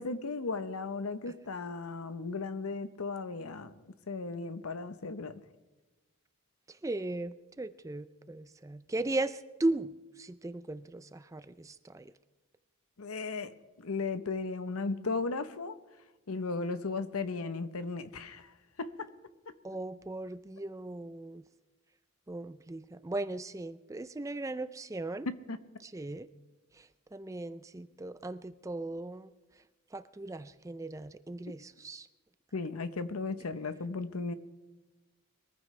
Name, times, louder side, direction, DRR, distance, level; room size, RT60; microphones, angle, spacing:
voice 1, 0.0-5.4 13.0-13.5 13.8-15.8 16.3-18.5 18.8-19.1 25.3-25.6 32.5-34.3, left 3 dB, 85° left, 12 dB, 0.9 m, -36 dB
voice 2, 6.7-12.1 19.6-21.4 22.3-25.3 25.8-26.3 26.8-29.3 29.9-32.1, right 2 dB, 15° right, 14 dB, 0.3 m, -37 dB
22.5 x 14.5 x 3.3 m, 1.2 s
head